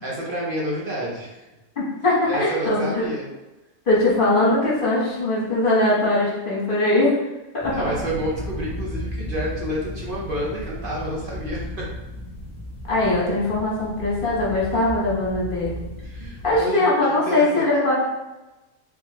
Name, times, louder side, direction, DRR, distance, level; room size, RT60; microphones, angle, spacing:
voice 1, 0.0-1.4 2.3-3.3 7.7-11.6 16.0-16.8 17.1-17.7, right 1 dB, 50° right, -4 dB, 0.7 m, -29 dB
voice 2, 1.8-3.1 3.9-7.1 7.5-7.9 12.9-15.9 16.4-18.0, left 2 dB, 40° left, -7 dB, 1.3 m, -21 dB
sound 1, 7.6-16.6, left 1 dB, 15° left, 0.6 m, -34 dB
3.5 x 3.1 x 3.0 m, 1.0 s
omnidirectional pair, 1.5 m